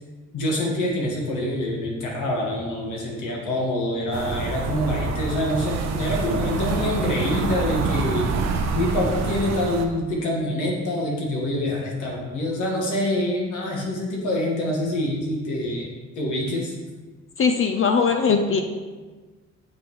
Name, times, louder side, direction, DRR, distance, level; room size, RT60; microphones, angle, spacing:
voice 1, 0.3-8.3 8.7-15.9 16.2-16.7, left 1 dB, 80° left, -2 dB, 1.8 m, -26 dB
sound 1, 4.1-9.9, right 4 dB, 60° right, 0.8 m, -26 dB
voice 2, 17.4-18.6, left 5 dB, 45° left, 4 dB, 0.6 m, -20 dB
8.2 x 5.3 x 3.2 m, 1.4 s
cardioid pair, 90°, 30 cm